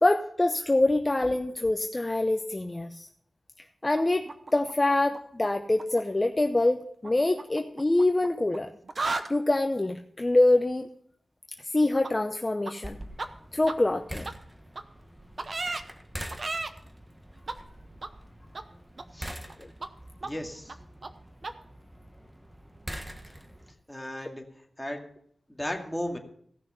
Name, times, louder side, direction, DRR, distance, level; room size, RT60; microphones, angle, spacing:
voice 1, 0.0-3.1 3.8-8.7 9.3-10.9 11.6-13.0 13.5-14.3 19.6-19.7 24.1-24.2, left 2 dB, 25° left, 7 dB, 0.6 m, -25 dB
sound 1, 4.0-5.5 5.7-6.0 7.0-8.6 8.8-9.3 12.0-12.1 12.7-12.8 13.2-13.3 13.7-13.8 14.2-14.3 14.8-14.9 15.4-15.8 16.3-16.7 17.5-17.6 18.0-18.1 18.5-18.6 19.0-19.5 19.8-19.9 20.2-20.3 20.7-20.8 21.0-21.1 21.4-21.5, right 3 dB, 50° right, 0.9 m, -34 dB
sound 2, 12.8-23.7, right 1 dB, 15° right, 1.3 m, -44 dB
voice 2, 20.2-20.8 23.9-24.4 24.8-25.1 25.6-26.2, left 1 dB, 5° left, 1 dB, 2.2 m, -35 dB
16.5 x 6.3 x 5.7 m, 0.67 s
wide cardioid pair, 65°, 0 cm